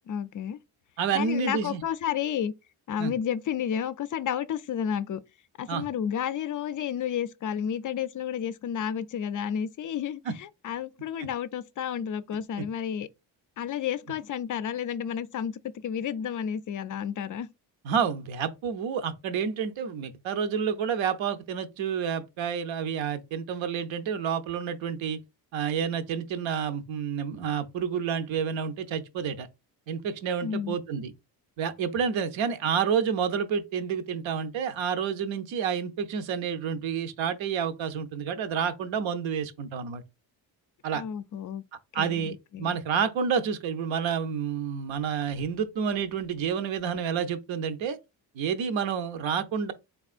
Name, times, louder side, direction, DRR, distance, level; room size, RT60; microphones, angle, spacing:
voice 1, 0.1-0.6 1.1-2.5 2.9-5.2 5.6-13.1 13.6-17.5 30.4-30.8 40.9-41.6 42.0-42.8, left 8 dB, 40° left, 0.4 m, -31 dB
voice 2, 1.0-1.8 3.0-3.1 5.7-5.8 17.8-25.2 25.5-29.5 29.9-31.1 31.6-40.0 40.8-41.0 41.9-48.0 48.3-49.7, right 7 dB, 70° right, 0.7 m, -29 dB
3.6 x 3.4 x 2.4 m
cardioid pair, 75°, 48 cm